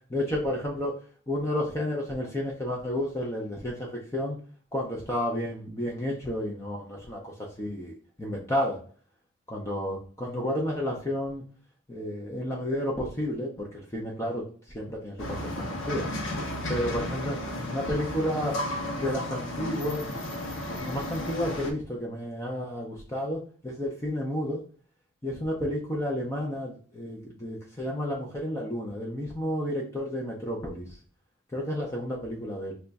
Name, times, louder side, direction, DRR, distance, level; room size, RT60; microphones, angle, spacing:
voice 1, 0.1-1.0 1.3-4.4 4.7-8.8 9.5-11.4 11.9-14.5 14.7-16.1 16.7-17.4 17.7-18.6 19.0-20.0 20.8-24.6 25.2-30.8 31.5-32.7, left 1 dB, 15° left, -2 dB, 0.5 m, -31 dB
sound 1, 15.2-21.7, left 1 dB, 70° left, 0.7 m, -33 dB
3.0 x 2.3 x 3.9 m, 0.42 s
head